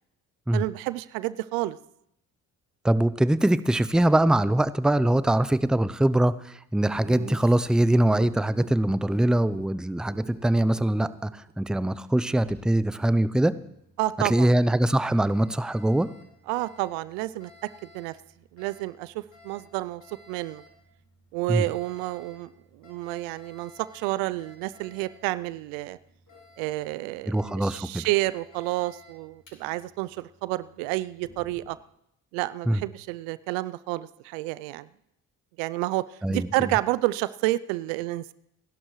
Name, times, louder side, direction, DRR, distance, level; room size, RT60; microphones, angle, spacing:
voice 1, 0.5-1.8 7.1-7.3 14.0-14.5 16.5-17.5 17.8-18.2 18.5-20.6 21.3-26.0 26.6-31.8 32.3-34.9 35.6-38.3, right 18 dB, 80° right, 17 dB, 0.6 m, -30 dB
voice 2, 2.8-11.3 11.6-13.5 14.2-16.1 21.5-21.6 27.3-28.0 32.7-32.8 36.2-36.5, right 1 dB, ahead, 16 dB, 0.5 m, -23 dB
Laughter, 6.9-8.7 9.0-9.2 9.5-9.7 9.9-11.5, right 3 dB, 20° right, 1.6 m, -43 dB
Alarm, 12.2-31.6, left 2 dB, 45° left, 7.3 m, -55 dB
28.5 x 11.5 x 3.2 m, 0.77 s
hypercardioid pair, 50°, 44 cm